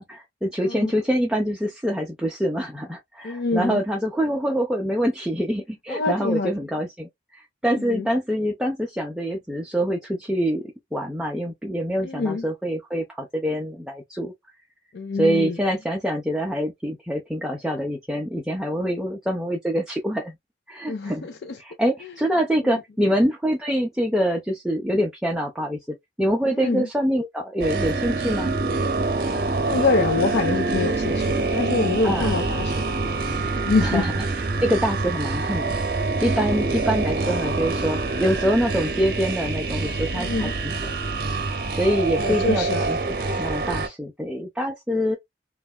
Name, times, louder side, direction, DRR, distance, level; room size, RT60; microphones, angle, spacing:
voice 1, 0.0-14.3 15.2-20.3 20.7-21.3 21.6-25.8 26.2-28.5 32.0-32.4 33.8-35.8 36.2-40.7 41.8-45.2, equal, 5° right, 0.4 m, -25 dB
voice 2, 3.2-3.8 5.9-6.5 7.8-8.1 12.0-12.5 14.9-15.6 20.9-21.6 22.6-22.8 26.5-26.9 29.6-33.0 33.6-34.0 40.1-40.5 42.2-42.9, left 3 dB, 55° left, 0.4 m, -25 dB
sound 1, 27.6-43.9, right 3 dB, 50° right, 0.7 m, -25 dB
3.2 x 2.2 x 2.3 m
head